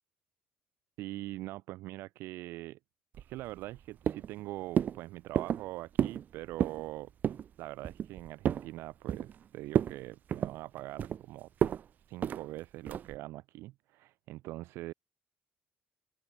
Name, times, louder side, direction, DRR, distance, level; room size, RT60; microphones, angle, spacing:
voice 1, 1.0-2.8 3.2-7.1 7.6-11.5 12.1-14.9, right 17 dB, 85° right, 5.7 m, -43 dB
sound 1, 3.1-3.8 4.1-4.4 4.8-5.0 5.4-5.7 6.0-6.2 6.5-6.8 7.2-7.5 7.8-8.7 9.1-9.4 9.7-10.0 10.3-11.2 11.6-11.8 12.2-12.4 12.9-13.2, right 9 dB, 45° right, 2.6 m, -31 dB
open air
cardioid pair, 145°, 4 cm